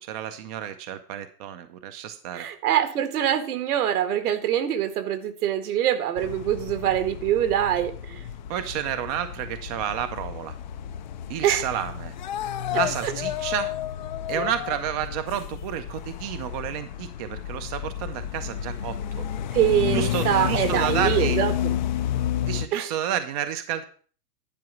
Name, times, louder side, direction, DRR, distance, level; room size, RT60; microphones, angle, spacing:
voice 1, 0.1-2.5 8.5-10.5 11.3-12.1 12.7-13.7 14.3-19.2 19.9-21.4 22.5-23.8, right 10 dB, 25° right, 10 dB, 0.5 m, -30 dB
voice 2, 2.3-8.2 11.4-11.7 13.0-13.1 14.3-14.5 19.5-21.7 22.7-22.9, right 11 dB, 65° right, 10 dB, 1.8 m, -24 dB
sound 1, 6.2-22.7, left 10 dB, 35° left, 0.4 m, -31 dB
11.0 x 4.8 x 7.1 m, 0.43 s
hypercardioid pair, 150°, 47 cm